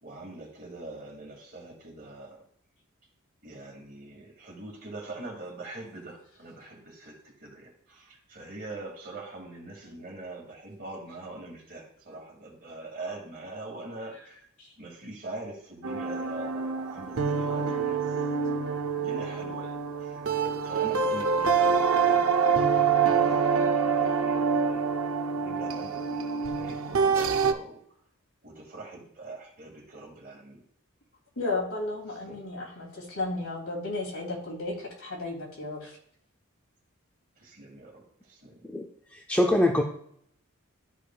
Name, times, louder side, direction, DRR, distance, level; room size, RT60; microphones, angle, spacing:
voice 1, 0.0-2.4 3.4-14.4 14.8-18.3 19.0-20.3 20.6-27.8 28.4-30.6 32.1-32.7 37.4-38.7, right 2 dB, 45° right, 0 dB, 2.2 m, -43 dB
sound 1, 15.8-27.5, right 6 dB, 70° right, 0.6 m, -26 dB
voice 2, 31.4-36.0, left 2 dB, 85° left, -1 dB, 2.7 m, -34 dB
voice 3, 38.7-39.8, left 1 dB, 5° left, 1 dB, 0.4 m, -24 dB
13.0 x 5.0 x 2.3 m, 0.67 s
head